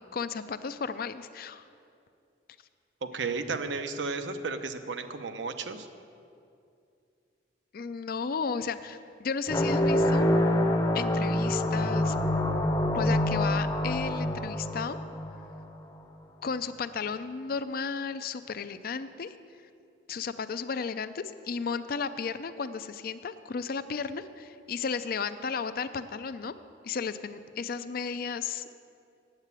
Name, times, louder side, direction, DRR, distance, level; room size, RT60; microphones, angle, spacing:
voice 1, 0.1-1.6 7.7-10.3 10.9-12.2 12.9-15.0 16.4-19.3 20.1-26.5 26.8-28.7, left 5 dB, 55° left, 12 dB, 0.5 m, -34 dB
voice 2, 3.0-5.9, right 4 dB, 85° right, 8 dB, 0.7 m, -33 dB
sound 1, 9.5-15.6, left 1 dB, 20° left, 0.7 m, -26 dB
8.9 x 8.3 x 8.2 m, 2.5 s
head